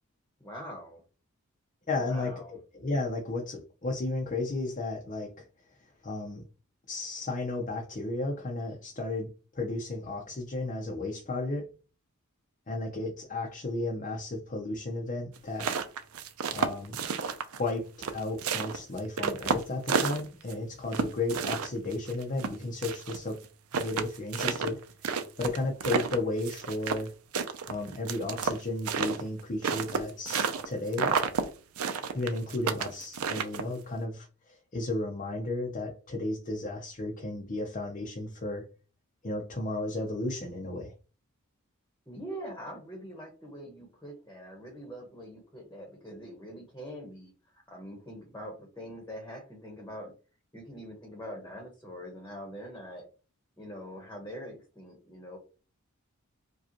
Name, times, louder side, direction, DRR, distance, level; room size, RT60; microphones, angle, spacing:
voice 1, 0.4-1.0 2.0-2.6 42.1-50.1 50.5-53.0 53.6-55.4, equal, 10° left, 0 dB, 1.0 m, -43 dB
voice 2, 1.9-5.5 6.0-6.4 6.9-11.7 12.7-15.7 16.5-17.0 17.6-23.4 23.8-24.8 25.4-27.1 27.7-31.1 32.1-38.7 39.2-40.9, left 2 dB, 35° left, 0 dB, 0.6 m, -33 dB
sound 1, 15.4-17.7 18.0-20.5 20.9-23.2 23.4-23.5 23.7-27.1 27.3-30.7 30.9-31.4 31.8-33.8, right 5 dB, 75° right, 0.6 m, -30 dB
4.9 x 2.4 x 2.9 m, 0.34 s
head